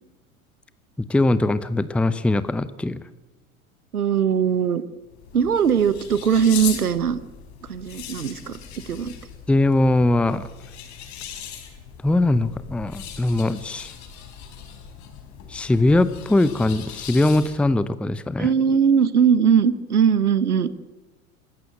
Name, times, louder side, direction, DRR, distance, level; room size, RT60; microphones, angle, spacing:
voice 1, 1.0-3.0 9.5-10.5 12.0-13.9 15.5-18.5, left 2 dB, 5° left, 15 dB, 0.7 m, -21 dB
voice 2, 3.9-4.8 5.3-7.2 7.6-8.6 8.9-9.1 18.4-20.7, right 7 dB, 80° right, 16 dB, 1.2 m, -20 dB
sound 1, 5.0-17.8, left 8 dB, 40° left, 4.4 m, -39 dB
26.0 x 13.5 x 7.8 m, 1.1 s
figure-of-eight pair, 80°, 44 cm